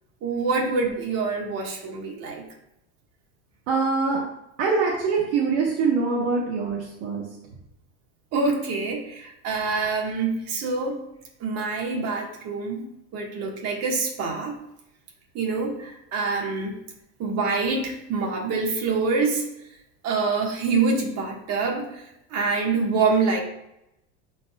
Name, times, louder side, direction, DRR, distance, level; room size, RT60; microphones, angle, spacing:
voice 1, 0.2-2.4 8.3-11.0 11.4-12.8 13.1-14.5 15.3-16.8 17.2-19.4 20.0-22.0 22.3-23.4, right 4 dB, 45° right, 0 dB, 1.6 m, -25 dB
voice 2, 3.7-4.2 4.6-7.2, right 4 dB, 60° right, -3 dB, 1.3 m, -23 dB
12.0 x 4.1 x 2.3 m, 0.83 s
cardioid pair, 160°, 36 cm